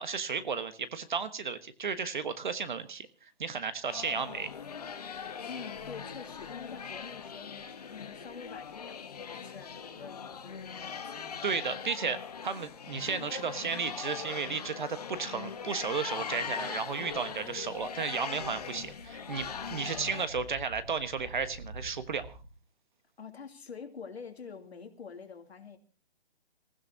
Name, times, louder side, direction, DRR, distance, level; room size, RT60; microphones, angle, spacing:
voice 1, 0.0-3.1 3.4-4.5 11.4-22.4, right 5 dB, 50° right, 12 dB, 1.3 m, -34 dB
sound 1, 3.9-20.3, left 6 dB, 40° left, 1.2 m, -41 dB
voice 2, 5.5-11.6 23.2-25.8, left 5 dB, 80° left, 4 dB, 2.9 m, -47 dB
sound 2, 17.6-18.0 18.3-22.5, right 1 dB, 15° right, 1.1 m, -49 dB
27.0 x 15.5 x 2.8 m, 0.34 s
hypercardioid pair, 175°, 32 cm